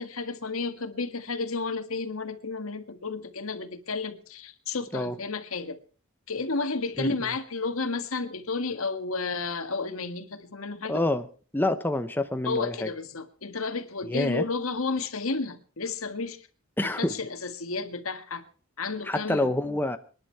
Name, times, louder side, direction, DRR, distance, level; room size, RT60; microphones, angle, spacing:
voice 1, 0.0-5.8 6.3-11.0 12.4-16.5 16.8-18.4 18.8-19.5, left 4 dB, 85° left, 9 dB, 1.8 m, -32 dB
voice 2, 10.9-11.3 11.5-12.9 14.0-14.4 16.8-17.1 19.0-20.0, left 1 dB, 10° left, 9 dB, 0.8 m, -27 dB
26.5 x 10.5 x 4.6 m, 0.41 s
head